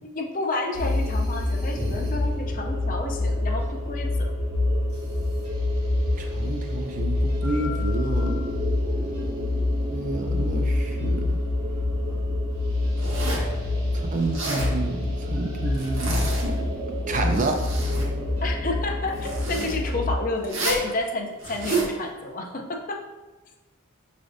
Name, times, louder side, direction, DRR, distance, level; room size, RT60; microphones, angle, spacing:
voice 1, 0.0-4.3 18.4-23.0, left 2 dB, 40° left, 3 dB, 0.4 m, -30 dB
sound 1, 0.7-20.1, left 2 dB, 85° right, 1.2 m, -26 dB
voice 2, 6.2-8.3 9.9-11.4 13.9-16.3 17.1-17.7, right 2 dB, 35° right, 4 dB, 0.4 m, -29 dB
Zipper (clothing), 13.0-13.5 14.2-14.7 15.7-16.6 17.1-18.1 19.2-19.7 20.4-20.9 21.4-21.9, right 2 dB, 65° right, 1.1 m, -30 dB
5.9 x 3.3 x 2.6 m, 1.2 s
head